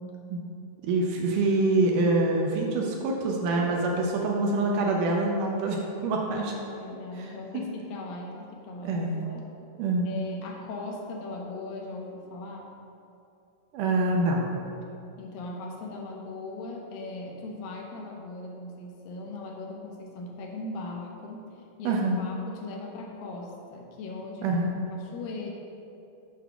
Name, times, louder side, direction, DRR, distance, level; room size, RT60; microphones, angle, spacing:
voice 1, 0.8-6.5 7.2-7.3 8.8-9.2 9.8-10.1 13.7-14.5 21.8-22.2 24.4-24.7, right 2 dB, 75° right, 0 dB, 2.1 m, -25 dB
voice 2, 6.3-9.5 10.1-12.7 15.2-24.5 24.9-25.5, left 3 dB, 80° left, 0 dB, 2.6 m, -39 dB
7.8 x 3.5 x 6.0 m, 2.7 s
omnidirectional pair, 4.0 m